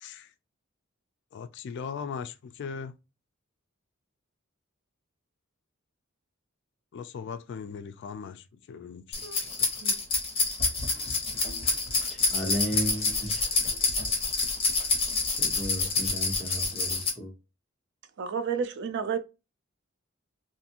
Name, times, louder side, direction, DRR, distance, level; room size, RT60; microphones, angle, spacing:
voice 1, 1.3-2.9 6.9-9.7, left 6 dB, 55° left, 0.3 m, -39 dB
sound 1, 9.1-17.1, left 3 dB, 30° left, 1.0 m, -27 dB
voice 2, 12.1-13.4 15.4-17.3, equal, ahead, 0.9 m, -34 dB
voice 3, 18.2-19.2, right 6 dB, 60° right, 0.4 m, -31 dB
2.6 x 2.5 x 2.7 m
head